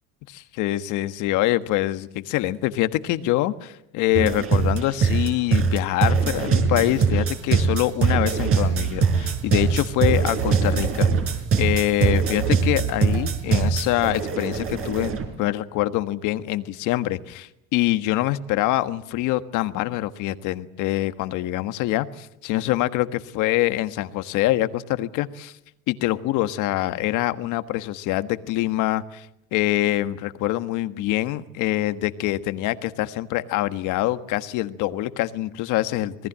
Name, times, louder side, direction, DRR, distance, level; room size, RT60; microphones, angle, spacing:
voice 1, 0.3-15.1 15.4-25.5 25.9-29.3 29.5-36.3, left 15 dB, 60° left, 11 dB, 1.5 m, -25 dB
sound 1, 4.1-15.3, right 5 dB, 40° right, 5.1 m, -22 dB
27.0 x 19.5 x 7.5 m, 0.82 s
supercardioid pair, 115°, 34 cm